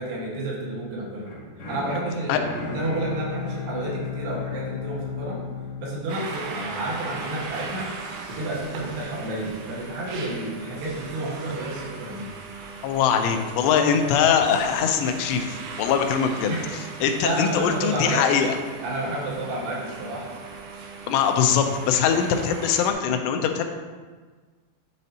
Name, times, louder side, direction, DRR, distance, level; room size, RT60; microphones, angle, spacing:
voice 1, 0.0-1.3 1.7-5.4 5.8-7.9 8.3-12.3 16.5-16.6 17.2-18.3 18.8-20.3, right 2 dB, 75° right, -5 dB, 3.4 m, -30 dB
sound 1, 1.2-7.3, left 6 dB, 65° left, 1.8 m, -35 dB
sound 2, 6.1-22.9, right 4 dB, 90° right, 3.0 m, -38 dB
voice 2, 12.8-16.5 17.0-18.6 21.1-23.6, left 7 dB, 85° left, 6 dB, 2.7 m, -22 dB
10.5 x 4.2 x 2.8 m, 1.4 s
omnidirectional pair, 5.0 m